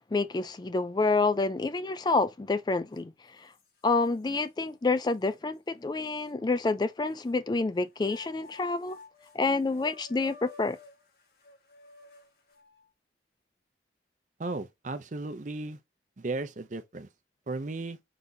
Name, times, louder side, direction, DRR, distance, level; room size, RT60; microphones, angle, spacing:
voice 1, 0.0-3.5 3.8-9.0 9.3-10.8, left 3 dB, 25° left, 0.3 m, -28 dB
sound 1, 2.9-3.0 3.5-4.4 5.1-5.2 6.3-7.4 8.0-12.9, left 4 dB, 55° left, 1.5 m, -53 dB
voice 2, 14.4-15.8 16.2-17.1 17.5-18.0, right 3 dB, 45° right, 0.6 m, -35 dB
4.9 x 4.0 x 2.7 m
head